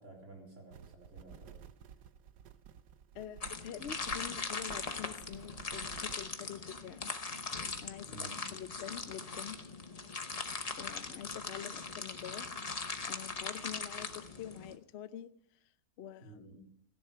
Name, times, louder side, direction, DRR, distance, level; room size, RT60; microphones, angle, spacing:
voice 1, 0.0-1.6 8.1-8.5 16.2-16.8, right 3 dB, 40° right, -1 dB, 4.1 m, -53 dB
sound 1, 0.7-6.3, right 8 dB, 70° right, 1.3 m, -54 dB
voice 2, 3.1-7.1 7.8-9.6 10.8-12.5 13.1-15.3 16.0-16.6, left 9 dB, 75° left, 12 dB, 0.6 m, -46 dB
sound 2, 3.4-14.8, left 4 dB, 35° left, 0.6 m, -40 dB
16.0 x 10.5 x 5.7 m, 0.69 s
omnidirectional pair, 1.9 m